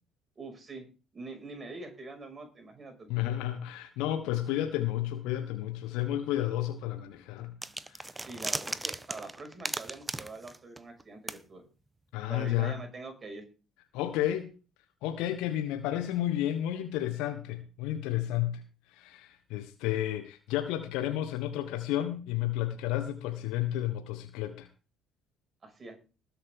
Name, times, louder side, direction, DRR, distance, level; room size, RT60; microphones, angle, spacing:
voice 1, 0.4-0.8 1.1-3.2 8.2-11.6 12.3-13.4 25.6-26.0, right 3 dB, 35° right, 5 dB, 6.1 m, -44 dB
voice 2, 3.1-7.5 7.9-8.1 12.1-12.8 13.9-14.5 15.0-18.6 18.9-24.7, left 13 dB, 70° left, 8 dB, 1.3 m, -31 dB
sound 1, 7.6-11.0 11.3-11.4, right 2 dB, 15° right, 1.1 m, -36 dB
20.0 x 9.0 x 3.8 m, 0.34 s
hypercardioid pair, 55°, 0 cm